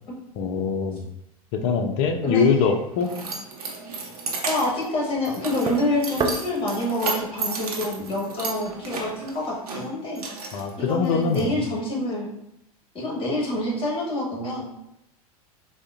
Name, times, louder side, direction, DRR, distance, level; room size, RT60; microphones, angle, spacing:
voice 1, 0.4-1.0 1.5-3.1 10.5-11.7, left 5 dB, 55° left, 6 dB, 0.4 m, -23 dB
Keys jangling, 2.3-11.4, right 3 dB, 80° right, 0.6 m, -34 dB
voice 2, 4.4-10.2 10.8-12.3 12.9-14.7, left 1 dB, 30° left, -3 dB, 1.3 m, -27 dB
sound 1, 4.5-9.6, right 3 dB, 20° right, 0.3 m, -35 dB
3.6 x 2.1 x 2.4 m, 0.80 s
hypercardioid pair, 85°, 19 cm